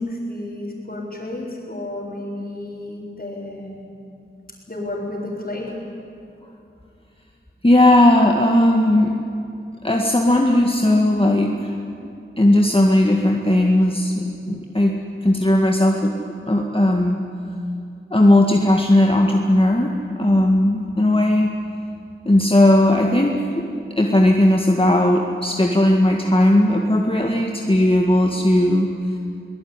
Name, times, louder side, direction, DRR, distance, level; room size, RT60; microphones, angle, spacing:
voice 1, 0.0-3.8 4.7-5.7, left 1 dB, 45° left, -8 dB, 4.9 m, -31 dB
voice 2, 7.6-9.1 9.8-11.8 12.4-16.2 16.5-17.3 18.1-21.5 22.3-23.7 24.0-28.9, left 1 dB, 25° left, 1 dB, 1.8 m, -17 dB
23.0 x 18.5 x 9.8 m, 2.5 s
wide cardioid pair, 50°, 21 cm